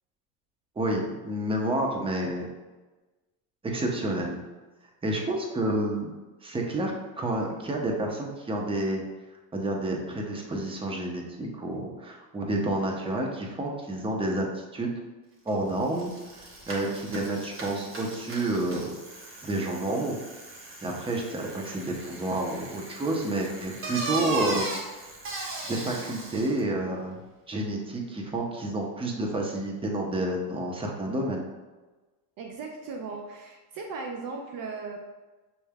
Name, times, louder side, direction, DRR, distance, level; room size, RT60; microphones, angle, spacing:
voice 1, 0.8-2.5 3.6-4.4 5.0-6.1 6.4-9.0 9.5-14.9 15.5-18.9 19.4-20.2 20.8-25.0 25.7-27.2 27.5-31.5, right 1 dB, 10° right, 0 dB, 0.8 m, -29 dB
Bicycle, 15.5-15.6 15.8-26.6, right 3 dB, 25° right, 1.1 m, -37 dB
voice 2, 32.4-35.0, right 4 dB, 45° right, 3 dB, 0.7 m, -37 dB
6.9 x 3.3 x 2.3 m, 1.2 s
supercardioid pair, 105°, 47 cm